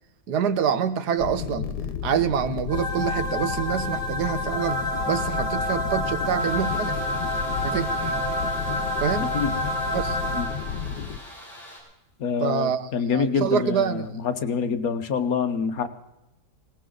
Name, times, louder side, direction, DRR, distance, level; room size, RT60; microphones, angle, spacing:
voice 1, 0.3-1.7 2.0-4.8 5.1-7.0 7.6-8.1 9.0-9.3 9.9-10.2 12.4-14.1, right 8 dB, 85° right, 12 dB, 1.5 m, -26 dB
sound 1, 1.2-11.2, left 7 dB, 90° left, 1.6 m, -32 dB
sound 2, 2.7-10.9, equal, 35° right, 4.1 m, -29 dB
sound 3, 6.4-11.8, equal, 25° left, 7.2 m, -45 dB
voice 2, 9.2-9.6 10.3-10.5 12.2-15.9, left 6 dB, 65° left, 9 dB, 1.5 m, -26 dB
19.5 x 18.5 x 3.9 m, 0.92 s
omnidirectional pair, 1.7 m